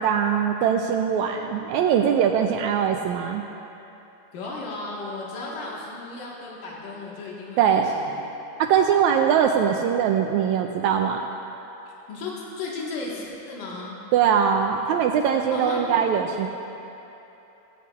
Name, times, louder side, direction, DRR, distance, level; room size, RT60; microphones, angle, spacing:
voice 1, 0.0-3.4 7.6-7.9 8.6-11.2 14.1-16.5, right 8 dB, 80° right, 3 dB, 1.7 m, -21 dB
voice 2, 4.3-8.2 12.1-12.3 12.6-14.0 15.5-15.8, left 3 dB, 85° left, -5 dB, 3.2 m, -35 dB
17.0 x 16.5 x 2.4 m, 3.0 s
omnidirectional pair, 3.7 m